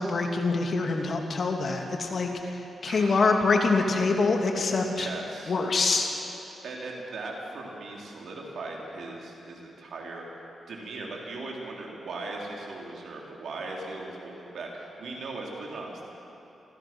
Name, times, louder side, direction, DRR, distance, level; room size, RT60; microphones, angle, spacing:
voice 1, 0.0-5.1 5.5-6.1, left 3 dB, 55° left, 2 dB, 2.5 m, -25 dB
voice 2, 2.9-3.2 5.0-5.6 6.6-16.0, right 2 dB, 75° right, -1 dB, 3.7 m, -38 dB
26.0 x 16.5 x 6.2 m, 2.9 s
cardioid pair, 85°, 0 cm